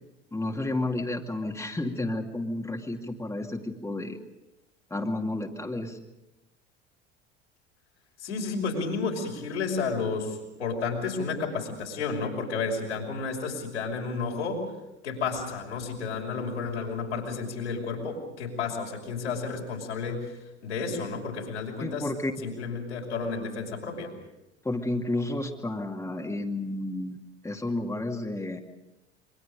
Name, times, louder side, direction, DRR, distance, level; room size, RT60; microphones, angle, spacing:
voice 1, 0.3-4.2 4.9-6.0 21.8-22.3 24.6-27.2 27.4-28.6, left 2 dB, 10° left, 1 dB, 2.5 m, -31 dB
voice 2, 8.2-14.7 15.0-22.0 22.4-24.1, left 4 dB, 80° left, -1 dB, 5.8 m, -32 dB
28.0 x 24.5 x 5.2 m, 0.96 s
figure-of-eight pair, 65°, 35 cm